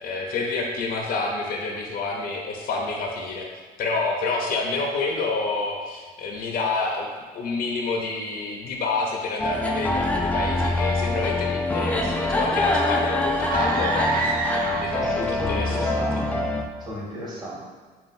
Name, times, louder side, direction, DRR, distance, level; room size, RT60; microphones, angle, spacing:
voice 1, 0.0-3.5 3.8-7.1 7.3-16.0, left 3 dB, 60° left, 1 dB, 0.7 m, -28 dB
sound 1, 9.4-16.6, left 2 dB, 10° left, 0.4 m, -24 dB
sound 2, 13.4-15.2, right 4 dB, 60° right, 0.4 m, -29 dB
voice 2, 14.9-16.5 16.8-17.6, equal, 25° right, -6 dB, 1.4 m, -34 dB
5.5 x 2.4 x 2.6 m, 1.5 s
cardioid pair, 110°, 17 cm